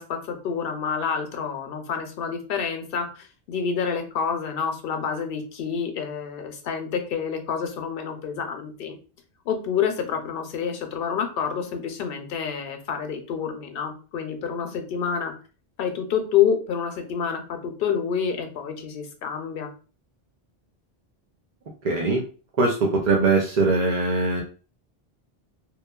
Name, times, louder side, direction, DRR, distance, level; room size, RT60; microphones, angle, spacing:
voice 1, 0.0-9.0 9.5-15.3 15.8-19.7, left 7 dB, 65° left, 5 dB, 0.7 m, -28 dB
voice 2, 21.8-22.3 22.6-24.4, right 3 dB, 55° right, -1 dB, 0.5 m, -21 dB
2.9 x 2.1 x 2.2 m, 0.36 s
omnidirectional pair, 1.0 m